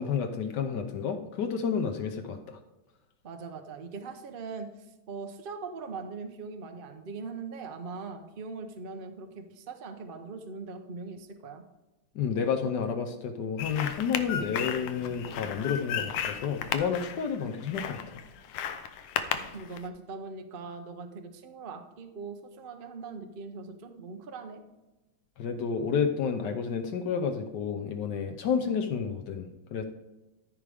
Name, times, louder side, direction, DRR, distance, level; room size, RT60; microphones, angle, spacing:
voice 1, 0.0-2.6 12.1-18.2 25.4-29.8, left 6 dB, 65° left, 6 dB, 1.1 m, -30 dB
voice 2, 3.2-4.7 5.1-11.6 19.5-24.6, right 4 dB, 85° right, 5 dB, 0.4 m, -41 dB
sound 1, 13.6-19.9, left 8 dB, 90° left, 1.6 m, -34 dB
14.0 x 4.9 x 3.4 m, 1.1 s
omnidirectional pair, 2.3 m